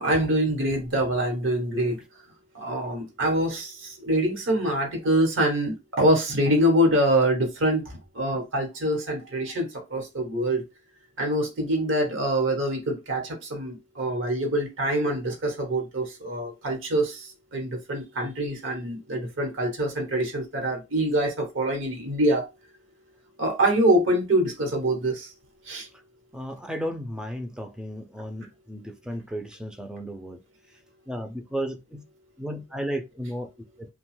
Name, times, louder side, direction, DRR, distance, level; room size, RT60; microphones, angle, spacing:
voice 1, 0.0-2.0 2.5-10.6 11.2-22.5 23.4-25.3 25.7-25.9, right 1 dB, 80° right, 1.0 m, -25 dB
voice 2, 26.3-30.4 30.7-30.8 31.1-32.0 32.4-33.5 33.8-33.9, equal, 5° right, 0.3 m, -34 dB
2.7 x 2.2 x 3.1 m
head